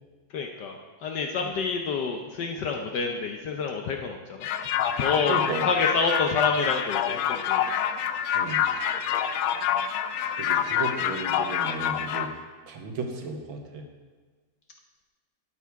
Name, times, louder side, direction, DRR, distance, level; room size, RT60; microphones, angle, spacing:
voice 1, 0.3-4.5 5.0-7.7, left 4 dB, 65° left, 3 dB, 1.3 m, -28 dB
sound 1, 4.4-12.3, left 9 dB, 85° left, 1.4 m, -27 dB
voice 2, 5.3-5.7 8.3-8.6 10.4-12.3 12.7-13.8, right 3 dB, 85° right, 4 dB, 2.0 m, -34 dB
12.0 x 8.8 x 4.6 m, 1.4 s
omnidirectional pair, 2.1 m